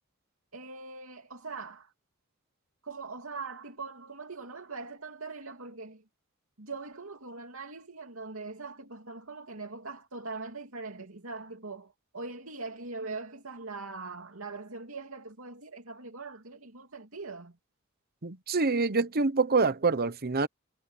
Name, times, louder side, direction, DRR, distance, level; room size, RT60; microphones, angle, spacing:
voice 1, 0.5-1.9 2.8-6.0 6.6-17.6, right 3 dB, 75° right, 2.9 m, -41 dB
voice 2, 18.2-20.5, right 4 dB, 50° right, 1.0 m, -26 dB
head